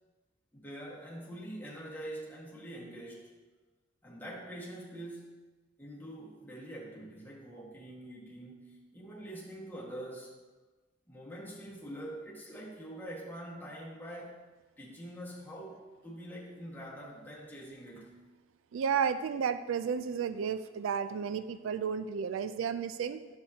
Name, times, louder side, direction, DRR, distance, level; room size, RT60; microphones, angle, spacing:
voice 1, 0.5-3.3 4.0-5.3 5.8-10.4 11.1-14.4 14.8-18.2, right 1 dB, 10° left, -6 dB, 1.5 m, -45 dB
voice 2, 18.7-23.2, right 7 dB, 80° right, 12 dB, 0.3 m, -32 dB
10.0 x 7.0 x 2.8 m, 1.3 s
head